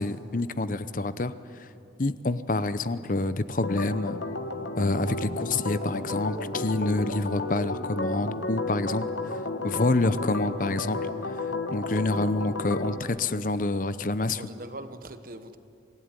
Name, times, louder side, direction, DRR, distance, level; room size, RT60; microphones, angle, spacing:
voice 1, 0.0-1.3 1.6-1.7 2.0-4.2 4.8-9.1 9.6-11.0 11.7-14.4, left 2 dB, 45° left, 13 dB, 0.7 m, -27 dB
Organ, 3.6-13.0, left 2 dB, 85° left, 1.4 m, -33 dB
voice 2, 12.0-12.3 14.2-15.6, right 1 dB, 50° right, 10 dB, 1.2 m, -42 dB
26.0 x 16.5 x 9.8 m, 2.7 s
head